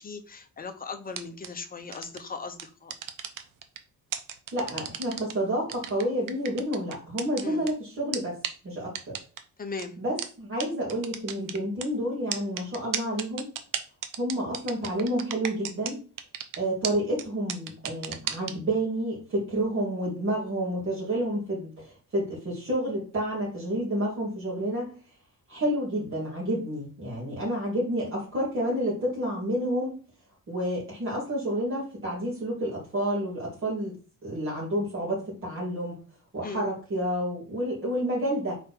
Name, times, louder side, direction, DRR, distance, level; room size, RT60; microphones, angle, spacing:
voice 1, 0.0-2.9 7.4-7.6 9.6-10.0 36.4-36.7, left 4 dB, 25° left, 0.9 m, -38 dB
sound 1, 1.1-1.5 1.9-2.2 2.6-3.8 4.1-5.3 5.7-7.7 8.1-8.2 8.4-8.5 8.9-9.4 9.8-9.9 10.2-10.3 10.6-10.7 10.9-11.8 12.3-15.9 16.2-16.6 16.8-16.9 17.2-17.3 17.5-18.5, right 9 dB, 80° right, 0.9 m, -33 dB
voice 2, 4.5-8.4 8.6-9.2 10.0-13.5 14.2-16.0 16.6-24.9 25.5-30.0 30.5-33.9 34.2-36.0 36.3-38.5, right 1 dB, 40° right, 2.7 m, -29 dB
4.5 x 4.2 x 5.8 m
cardioid pair, 145°, 32 cm